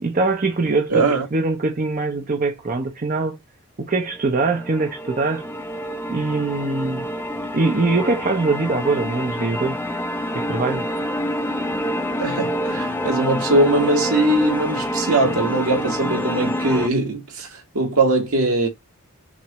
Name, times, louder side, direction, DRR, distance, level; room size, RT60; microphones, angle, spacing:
voice 1, 0.0-3.4 3.8-5.4 6.1-7.1 7.5-9.8 10.3-10.8, right 3 dB, 40° right, 0.6 m, -22 dB
voice 2, 0.9-1.3 12.2-18.7, right 2 dB, 85° right, 1.8 m, -21 dB
sound 1, 4.1-16.9, equal, 10° left, 0.5 m, -27 dB
6.0 x 2.5 x 3.0 m
head